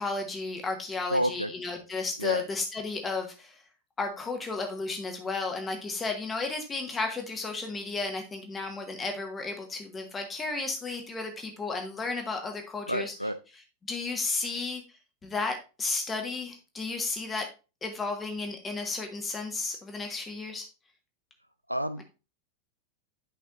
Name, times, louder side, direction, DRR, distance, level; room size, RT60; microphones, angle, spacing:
voice 1, 0.0-3.6 4.0-13.1 13.9-14.8 15.2-17.5 17.8-20.6, left 3 dB, 15° left, 4 dB, 1.7 m, -33 dB
voice 2, 1.1-1.5 2.2-2.4 12.9-13.4 21.7-22.0, equal, 90° right, 11 dB, 0.5 m, -29 dB
10.0 x 5.3 x 2.6 m, 0.31 s
figure-of-eight pair, 90°, 0 cm